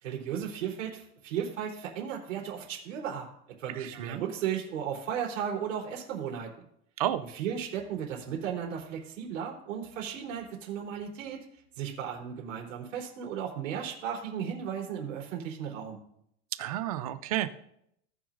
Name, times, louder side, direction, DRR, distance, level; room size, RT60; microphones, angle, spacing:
voice 1, 0.0-3.3 3.6-6.5 7.3-11.4 11.8-16.0, right 8 dB, 80° right, -2 dB, 3.6 m, -35 dB
voice 2, 3.8-4.2 7.0-7.2 16.6-17.6, right 13 dB, 30° right, 12 dB, 0.4 m, -31 dB
18.0 x 6.1 x 2.5 m, 0.74 s
supercardioid pair, 170°, 37 cm